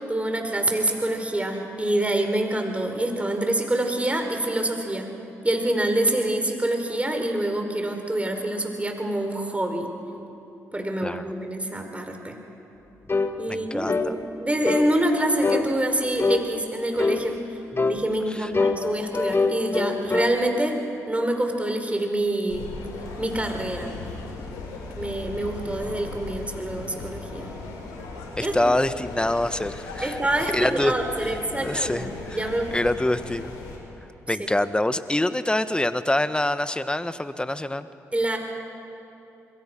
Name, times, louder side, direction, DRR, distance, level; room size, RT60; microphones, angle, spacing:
voice 1, 0.0-5.1 5.4-9.9 10.7-12.4 13.4-17.6 17.9-20.8 21.1-22.7 23.2-23.9 25.0-27.5 28.4-28.7 30.0-32.8 34.4-34.5 38.1-38.4, right 1 dB, 20° right, 4 dB, 4.7 m, -26 dB
sound 1, 13.1-13.4 13.9-14.1 14.7-14.9 15.4-15.7 16.2-16.5 17.0-17.2 17.8-18.0 18.5-20.3, left 4 dB, 35° left, 1.9 m, -24 dB
voice 2, 13.5-14.1 17.8-17.9 18.3-18.5 28.4-30.2 30.5-30.9 31.2-31.3 31.6-33.5 34.3-37.9, left 1 dB, 15° left, 12 dB, 1.3 m, -25 dB
sound 2, 22.5-33.8, left 3 dB, 80° left, 4.1 m, -37 dB
27.0 x 22.0 x 6.1 m, 3.0 s
hypercardioid pair, 40°, 7 cm